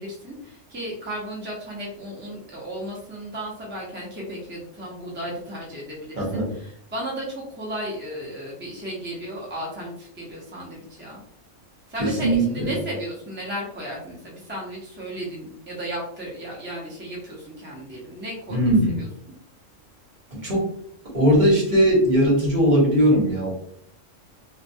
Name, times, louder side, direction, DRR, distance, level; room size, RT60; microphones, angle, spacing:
voice 1, 0.0-11.2 11.9-19.1, right 1 dB, 15° right, -4 dB, 0.3 m, -34 dB
voice 2, 6.2-6.5 12.0-12.7 18.5-19.0 20.3-20.7 21.1-23.5, equal, 40° right, -4 dB, 0.9 m, -19 dB
2.2 x 2.2 x 2.6 m, 0.64 s
omnidirectional pair, 1.3 m